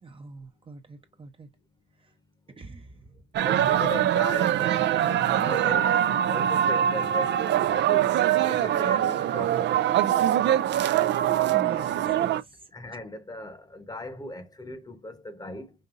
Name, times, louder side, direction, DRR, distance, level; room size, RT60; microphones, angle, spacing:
voice 1, 0.0-1.5 2.6-3.1 11.5-12.7, right 4 dB, 25° right, 0.7 m, -43 dB
sound 1, 3.3-12.4, right 11 dB, 65° right, 0.4 m, -23 dB
voice 2, 3.4-5.9 6.3-9.7 12.7-15.7, left 1 dB, 20° left, 0.9 m, -38 dB
5.3 x 2.6 x 2.5 m
cardioid pair, 90°, 20 cm